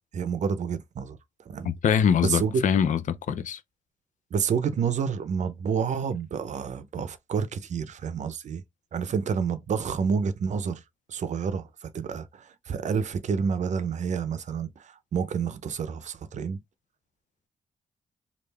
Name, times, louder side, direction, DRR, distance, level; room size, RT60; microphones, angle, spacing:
voice 1, 0.1-1.2 1.5-1.7 2.2-2.5 4.3-8.6 8.9-10.8 11.1-16.6, right 6 dB, 65° right, 0.6 m, -29 dB
voice 2, 1.6-3.6, left 7 dB, 70° left, 0.5 m, -23 dB
3.3 x 2.5 x 3.3 m
cardioid pair, 70°, 13 cm